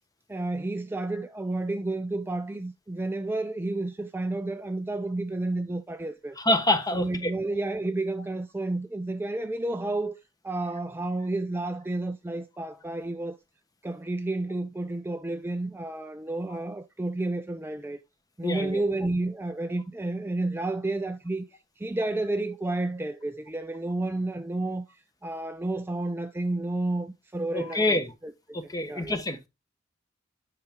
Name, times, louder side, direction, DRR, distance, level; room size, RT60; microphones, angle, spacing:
voice 1, 0.3-6.4 6.9-10.2 10.4-13.4 13.8-18.0 18.4-28.6 28.9-29.2, right 2 dB, 10° right, 0.4 m, -31 dB
voice 2, 6.4-7.3 18.4-18.8 27.5-28.1 28.5-29.4, left 1 dB, 20° left, 1.0 m, -26 dB
9.7 x 5.7 x 3.6 m
head